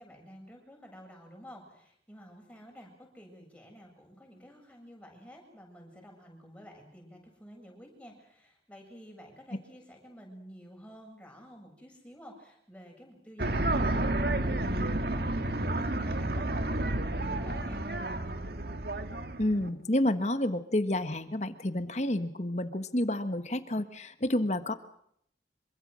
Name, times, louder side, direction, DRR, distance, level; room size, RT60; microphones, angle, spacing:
voice 1, 0.0-17.8, equal, 5° left, 1 dB, 7.8 m, -51 dB
sound 1, 13.4-19.7, right 1 dB, 60° right, 1.8 m, -30 dB
voice 2, 19.4-24.7, left 1 dB, 40° left, 10 dB, 1.5 m, -29 dB
26.5 x 24.5 x 6.4 m, 0.70 s
head